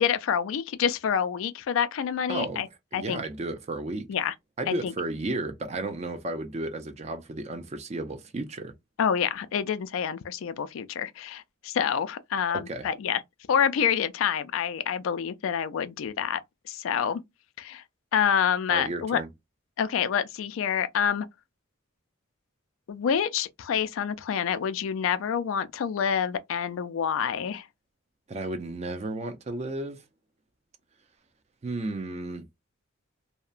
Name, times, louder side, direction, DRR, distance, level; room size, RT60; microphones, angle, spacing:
voice 1, 0.0-2.7 2.9-3.2 4.1-4.3 4.8-4.9 9.0-13.2 13.5-16.4 16.7-17.2 17.6-17.8 18.1-19.2 19.8-21.3 22.9-27.7, left 8 dB, 80° left, 0.4 m, -27 dB
voice 2, 2.3-2.6 2.9-4.1 4.6-8.7 12.5-12.8 18.7-19.3 28.3-30.0 31.6-32.4, right 2 dB, 35° right, 0.4 m, -33 dB
2.8 x 2.1 x 2.4 m
head